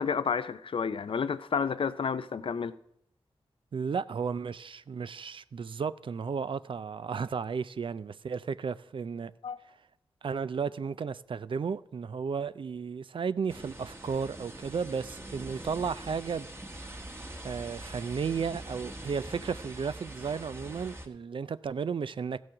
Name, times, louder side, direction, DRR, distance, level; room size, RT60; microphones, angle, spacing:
voice 1, 0.0-2.7 9.4-9.6, left 6 dB, 65° left, 0.5 m, -30 dB
voice 2, 3.7-9.3 10.2-16.5 17.4-22.4, right 6 dB, 60° right, 0.4 m, -34 dB
sound 1, 13.5-21.1, right 1 dB, 25° right, 1.3 m, -43 dB
14.5 x 6.2 x 5.8 m
cardioid pair, 55°, 10 cm